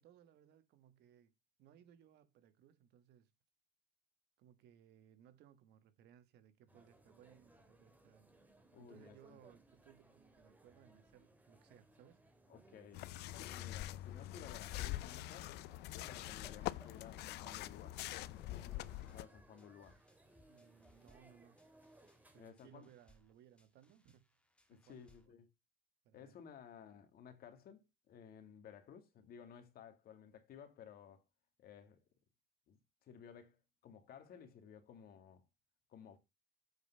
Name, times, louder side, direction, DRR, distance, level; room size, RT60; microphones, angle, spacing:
voice 1, 0.0-1.3 1.6-3.3 4.4-8.3 8.8-12.4 13.4-13.7 20.5-21.6 22.3-24.4 24.7-25.3 26.0-26.4, right 10 dB, 80° right, 1.4 m, -64 dB
sound 1, 6.7-22.5, right 2 dB, 10° right, 2.1 m, -65 dB
voice 2, 8.7-9.4 12.5-13.1 13.5-15.5 15.9-18.0 18.5-20.0 22.3-22.9 24.7-25.5 26.1-31.2 31.6-32.0 32.7-35.5 35.9-36.2, left 8 dB, 65° left, 2.2 m, -56 dB
sound 2, 12.9-19.3, left 15 dB, 80° left, 0.5 m, -44 dB
sound 3, 18.7-25.3, equal, 5° left, 1.4 m, -71 dB
8.1 x 5.4 x 5.5 m
cardioid pair, 110°, 17 cm